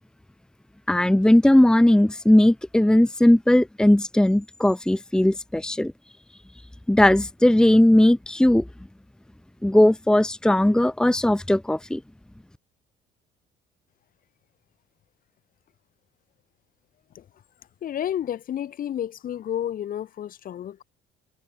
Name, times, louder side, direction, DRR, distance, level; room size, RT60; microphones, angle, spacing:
voice 1, 0.9-5.9 6.9-8.6 9.6-12.0, left 1 dB, 5° left, 1.3 m, -18 dB
voice 2, 17.8-20.8, left 10 dB, 55° left, 4.0 m, -31 dB
cardioid pair, 110°, 17 cm